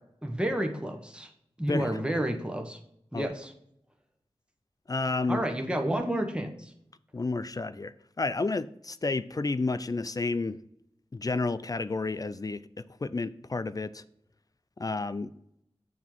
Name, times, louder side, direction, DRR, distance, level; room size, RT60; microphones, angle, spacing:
voice 1, 0.2-1.3 1.6-2.8 3.1-3.5 5.3-6.7, right 1 dB, 10° right, 1.0 m, -30 dB
voice 2, 4.9-5.4 7.1-10.6 11.1-14.0 14.8-15.3, left 3 dB, 35° left, 0.4 m, -31 dB
7.0 x 3.6 x 5.8 m
wide cardioid pair, 70°, 11 cm